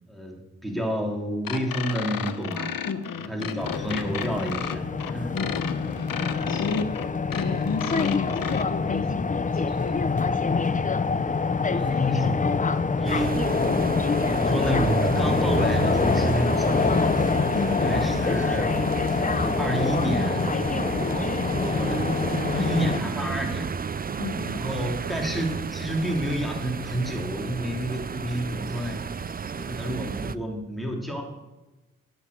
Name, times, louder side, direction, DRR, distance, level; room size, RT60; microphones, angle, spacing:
voice 1, 0.1-2.7 3.3-5.3 11.6-12.3 12.8-13.5 14.3-17.2 17.8-18.7 19.2-20.5 21.1-21.3 21.6-22.2 22.5-23.7 24.5-29.3 29.5-31.2, equal, ahead, 0 dB, 2.9 m, -30 dB
sound 1, 1.4-8.6, left 8 dB, 80° left, 0.8 m, -33 dB
voice 2, 2.9-3.6 5.3-5.8 6.5-7.1 7.3-10.2 17.5-18.0 22.6-23.0 24.2-24.6, left 4 dB, 50° left, 5 dB, 1.3 m, -32 dB
sound 2, 3.6-23.0, left 4 dB, 25° left, 0.5 m, -25 dB
sound 3, 13.0-30.3, right 6 dB, 30° right, 0.4 m, -32 dB
9.8 x 7.3 x 7.9 m, 1.1 s
cardioid pair, 80°, 33 cm